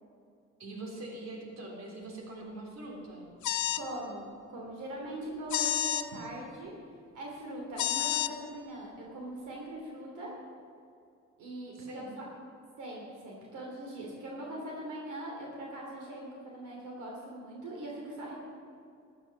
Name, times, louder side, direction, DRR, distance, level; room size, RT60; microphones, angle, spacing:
voice 1, 0.6-3.3 11.7-12.1, right 2 dB, 60° right, 0 dB, 3.7 m, -43 dB
sound 1, 3.4-3.9 5.5-6.1 7.8-8.3, left 12 dB, 75° left, 0.7 m, -29 dB
voice 2, 3.7-6.7 7.1-10.3 11.4-12.2 12.8-18.3, right 1 dB, 80° right, -2 dB, 3.3 m, -41 dB
14.0 x 12.0 x 5.9 m, 2.5 s
cardioid pair, 90°, 30 cm